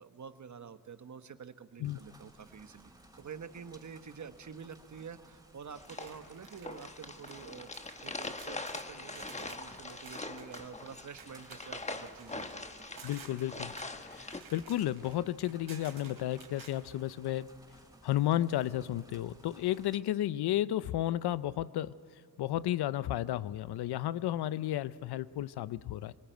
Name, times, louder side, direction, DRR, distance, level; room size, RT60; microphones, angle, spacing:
voice 1, 0.0-12.8, right 6 dB, 50° right, 10 dB, 1.2 m, -48 dB
sound 1, 1.8-20.0, right 1 dB, 10° right, 4.4 m, -59 dB
sound 2, 5.8-14.4, left 2 dB, 20° left, 1.2 m, -43 dB
sound 3, 5.9-7.4 7.7-16.7, right 5 dB, 70° right, 3.9 m, -54 dB
voice 2, 13.0-13.7 14.1-17.5 18.0-21.9 22.4-26.1, left 13 dB, 85° left, 17 dB, 0.6 m, -32 dB
23.5 x 19.0 x 9.2 m, 2.5 s
cardioid pair, 70°, 38 cm